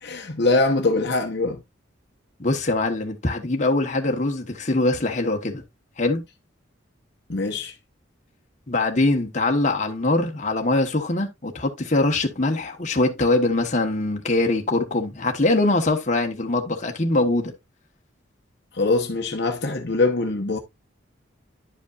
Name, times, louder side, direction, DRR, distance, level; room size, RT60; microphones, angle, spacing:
voice 1, 0.0-1.6 7.3-7.7 18.7-20.6, left 3 dB, 55° left, 1.0 m, -23 dB
voice 2, 2.4-5.6 6.0-6.2 8.7-17.5, left 2 dB, 35° left, 1.2 m, -22 dB
11.0 x 5.2 x 2.5 m
head